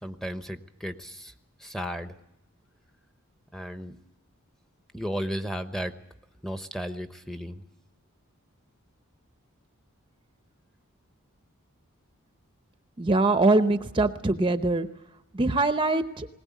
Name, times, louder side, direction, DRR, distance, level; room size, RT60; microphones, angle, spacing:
voice 1, 0.0-1.3 1.6-2.2 3.5-4.0 4.9-6.0 6.4-7.6, equal, ahead, 8 dB, 1.0 m, -34 dB
voice 2, 13.0-14.9 15.3-16.3, right 2 dB, 25° right, 9 dB, 0.8 m, -23 dB
20.5 x 19.0 x 8.4 m, 0.83 s
head